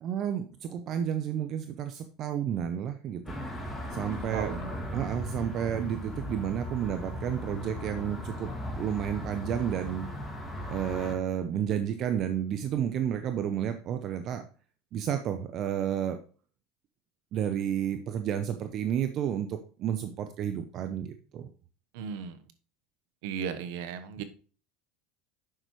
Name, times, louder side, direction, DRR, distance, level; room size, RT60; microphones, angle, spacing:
voice 1, 0.0-3.3 3.9-4.6 4.9-8.5 8.8-10.1 10.7-14.4 14.9-16.2 17.3-21.5 24.2-24.3, right 9 dB, 45° right, 8 dB, 0.8 m, -31 dB
sound 1, 3.3-11.2, left 1 dB, 15° left, 2.1 m, -37 dB
voice 2, 4.3-4.7 21.9-22.5 23.2-24.2, right 7 dB, 75° right, 10 dB, 1.1 m, -36 dB
9.7 x 6.8 x 3.2 m, 0.40 s
supercardioid pair, 115°, 0 cm